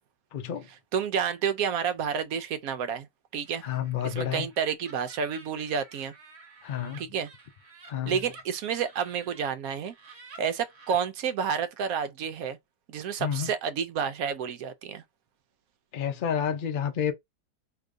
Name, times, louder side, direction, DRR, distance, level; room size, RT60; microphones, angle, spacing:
voice 1, 0.3-0.7 3.6-4.5 6.6-7.1 7.9-8.2 13.2-13.5 15.9-17.1, left 8 dB, 80° left, 0.4 m, -30 dB
voice 2, 0.9-3.1 3.3-3.6 4.0-6.1 7.0-7.3 8.1-9.9 10.4-12.6 12.9-15.0, right 7 dB, 70° right, 0.9 m, -30 dB
Laughter, 3.3-9.5 9.8-11.1, right 3 dB, 45° right, 1.2 m, -52 dB
4.6 x 2.9 x 2.5 m
omnidirectional pair, 1.8 m